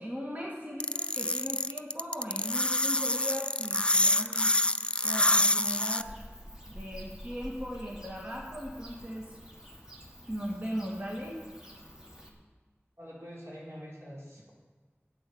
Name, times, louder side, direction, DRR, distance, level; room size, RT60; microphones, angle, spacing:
voice 1, 0.0-4.6 5.0-6.1 6.7-9.3 10.3-11.4, equal, 35° right, -3 dB, 1.9 m, -38 dB
sound 1, 0.8-6.0, left 1 dB, 20° left, 0.4 m, -26 dB
Bird / Cricket, 6.0-12.3, equal, 15° right, 2.1 m, -48 dB
voice 2, 13.0-14.5, equal, 70° right, -6 dB, 4.2 m, -45 dB
12.0 x 8.8 x 7.0 m, 1.4 s
wide cardioid pair, 40°, 5 cm